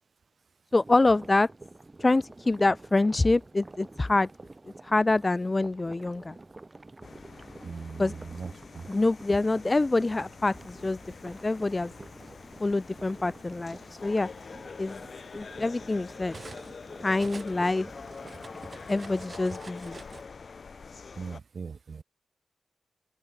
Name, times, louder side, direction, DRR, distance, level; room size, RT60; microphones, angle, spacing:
voice 1, 0.7-1.5 2.0-4.3 4.8-6.4 8.0-8.2 8.9-11.9 12.6-14.3 14.8-15.0 15.3-16.3 17.0-18.0 18.9-20.0, left 2 dB, 35° left, 0.4 m, -26 dB
sound 1, 0.7-19.4, right 2 dB, 35° right, 2.1 m, -50 dB
sound 2, 7.0-21.4, left 5 dB, 65° left, 1.7 m, -45 dB
voice 2, 7.6-8.8 21.2-22.0, right 5 dB, 70° right, 0.5 m, -39 dB
Cutlery silverware, 10.7-12.0 12.9-13.1 13.5-16.8 17.1-20.2, right 4 dB, 55° right, 4.4 m, -48 dB
open air
cardioid pair, 50°, 0 cm